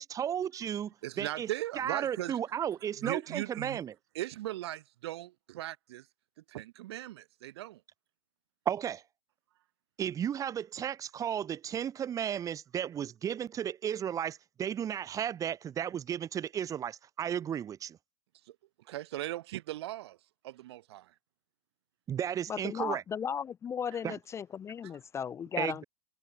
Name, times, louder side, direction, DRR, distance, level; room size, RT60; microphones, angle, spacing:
voice 1, 0.0-1.5 1.8-3.9 8.7-9.0 10.0-18.0 22.1-23.0 24.0-24.2 25.6-25.8, right 9 dB, 20° right, 0.9 m, -34 dB
voice 2, 1.0-2.4 3.0-3.8 4.1-6.1 6.5-7.8 18.4-20.2 20.4-21.1 23.9-24.0 24.8-24.9, right 15 dB, 55° right, 0.6 m, -39 dB
voice 3, 22.5-25.8, left 7 dB, 15° left, 0.6 m, -36 dB
figure-of-eight pair, 105°, 16 cm